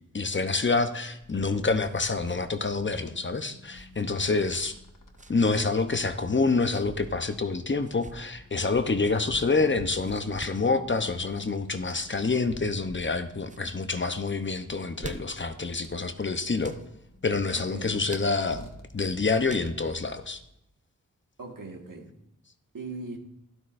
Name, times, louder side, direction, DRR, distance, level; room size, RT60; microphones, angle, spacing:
voice 1, 0.1-4.7 5.3-16.7 17.2-20.4, left 3 dB, 35° left, 8 dB, 0.8 m, -27 dB
sound 1, 1.2-20.5, left 2 dB, 75° left, 1.3 m, -50 dB
sound 2, 1.2-2.4 2.7-2.8 3.7-4.0 5.1-5.5 6.4-6.9 7.8-8.2 8.8-9.2 9.9-10.7 11.8-12.2 12.8-13.2 13.4-13.7 14.7-15.5 16.6-16.9 18.1-18.7 19.5-20.0, right 3 dB, 25° right, 0.7 m, -45 dB
voice 2, 17.6-18.0 21.4-22.1 22.7-23.2, right 3 dB, 80° right, 2 dB, 1.8 m, -40 dB
12.5 x 12.0 x 2.6 m, 0.81 s
wide cardioid pair, 85°, 32 cm